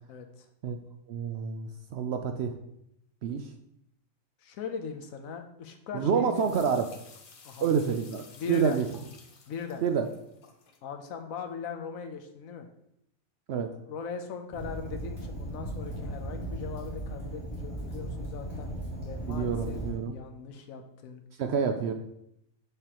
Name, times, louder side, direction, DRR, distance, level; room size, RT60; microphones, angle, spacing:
voice 1, 0.1-0.5 4.4-6.5 7.4-8.0 8.3-8.8 9.5-9.8 10.8-12.7 13.9-18.7 19.0-21.2, left 6 dB, 75° left, 6 dB, 1.1 m, -39 dB
voice 2, 1.1-2.6 3.2-3.5 5.9-6.9 7.6-8.9 9.8-10.1 13.5-13.7 19.3-20.1 21.4-21.9, right 7 dB, 65° right, 6 dB, 0.7 m, -28 dB
sound 1, 6.3-10.8, left 4 dB, 45° left, 0.8 m, -53 dB
Fire, 14.5-19.9, right 1 dB, 25° left, 2.3 m, -37 dB
6.7 x 6.5 x 2.9 m, 0.78 s
omnidirectional pair, 1.5 m